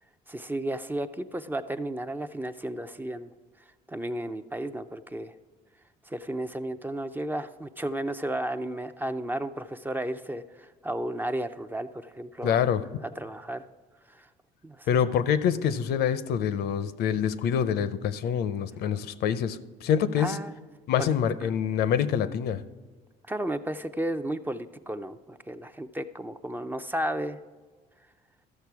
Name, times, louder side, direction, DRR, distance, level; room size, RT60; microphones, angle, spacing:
voice 1, 0.3-3.3 3.9-5.3 6.1-12.7 13.2-13.7 14.1-14.3 14.6-14.9 20.2-20.6 21.0-21.1 21.4-21.5 23.3-27.4, right 1 dB, 10° right, 0.4 m, -33 dB
voice 2, 12.4-12.9 14.9-20.4 20.9-22.6, left 8 dB, 70° left, 0.6 m, -26 dB
13.5 x 6.6 x 4.7 m
cardioid pair, 110°, 17 cm